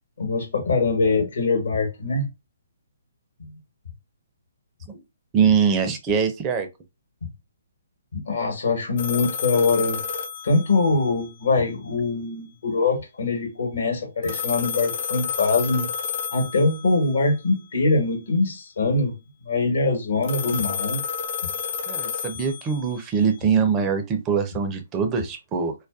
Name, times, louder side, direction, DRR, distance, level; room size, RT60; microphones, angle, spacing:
voice 1, 0.2-2.3 3.4-3.5 8.1-10.0 10.4-15.9 16.3-19.2 19.4-21.0, left 3 dB, 65° left, 1.1 m, -23 dB
voice 2, 5.3-6.7 21.9-25.7, right 6 dB, 20° right, 0.4 m, -23 dB
sound 1, 9.0-11.3 14.2-17.1 20.2-23.2, left 6 dB, 45° left, 0.5 m, -30 dB
2.3 x 2.2 x 2.4 m
figure-of-eight pair, 135°, 0 cm